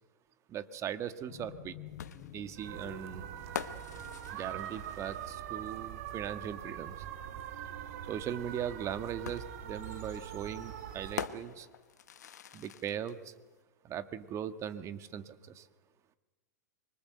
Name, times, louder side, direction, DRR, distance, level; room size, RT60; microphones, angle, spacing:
voice 1, 0.5-1.7 2.3-3.3 4.3-6.9 8.1-11.7 12.5-13.2 13.8-15.6, right 9 dB, 35° right, 11 dB, 1.6 m, -39 dB
sound 1, 1.3-7.8, left 9 dB, 50° left, 2.9 m, -53 dB
sound 2, 2.0-5.6 7.1-7.2 9.2-13.2, left 9 dB, 75° left, 1.3 m, -45 dB
sound 3, 2.5-11.3, right 10 dB, 60° right, 1.9 m, -43 dB
25.0 x 23.5 x 7.9 m, 1.2 s
hypercardioid pair, 105°, 9 cm